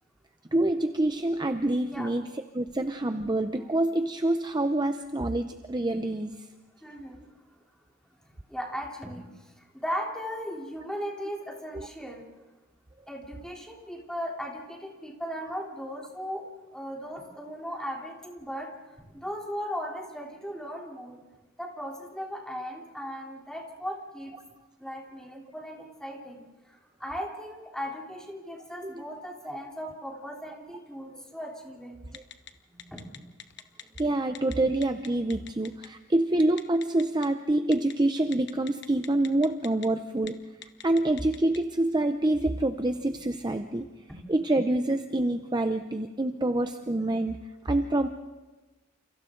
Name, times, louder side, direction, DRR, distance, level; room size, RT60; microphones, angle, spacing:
voice 1, 0.5-2.3 2.5-6.5 28.8-29.0 32.1-32.2 34.0-40.4 40.8-43.9 44.3-47.4 47.6-48.1, right 1 dB, 20° right, 8 dB, 0.7 m, -26 dB
voice 2, 6.8-7.3 8.2-12.3 13.1-16.4 16.7-18.7 19.1-21.2 21.6-24.3 24.8-26.4 26.7-32.0 32.9-33.3 44.1-44.2, equal, 5° left, -1 dB, 3.5 m, -37 dB
Telephone, 32.1-32.5 32.8-34.0 34.3-34.5 34.8-35.9 36.6-37.3 37.7-37.9 38.3-39.9 40.2-40.3 40.6-41.6, left 10 dB, 55° left, 1.2 m, -42 dB
29.5 x 28.5 x 3.9 m, 1.2 s
head